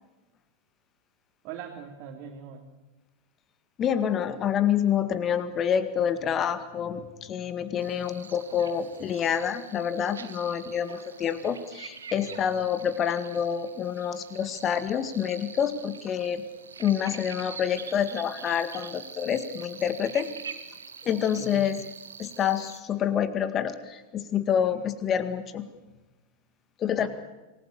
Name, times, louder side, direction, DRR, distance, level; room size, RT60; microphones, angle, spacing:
voice 1, 1.4-2.7 12.3-12.7 21.4-21.7 27.0-27.1, right 8 dB, 40° right, 0 dB, 3.1 m, -42 dB
voice 2, 3.8-16.4 16.8-20.3 21.0-21.8 22.2-25.7 26.8-27.1, left 8 dB, 30° left, 12 dB, 2.0 m, -27 dB
sound 1, 7.8-22.8, right 6 dB, 70° right, 1.9 m, -44 dB
27.5 x 20.5 x 6.9 m, 1.1 s
figure-of-eight pair, 90°, 0 cm